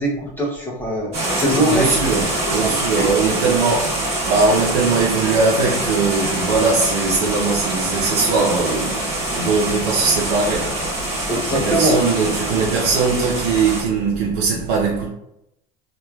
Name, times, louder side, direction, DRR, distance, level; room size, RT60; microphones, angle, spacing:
voice 1, 0.0-1.9 2.6-3.0 11.3-12.0, right 1 dB, 10° left, 0.5 m, -22 dB
sound 1, 1.1-13.8, right 1 dB, 30° right, 1.1 m, -24 dB
voice 2, 1.5-10.9 11.5-15.1, right 4 dB, 85° right, 0.7 m, -20 dB
3.0 x 2.2 x 2.3 m
supercardioid pair, 140°, 19 cm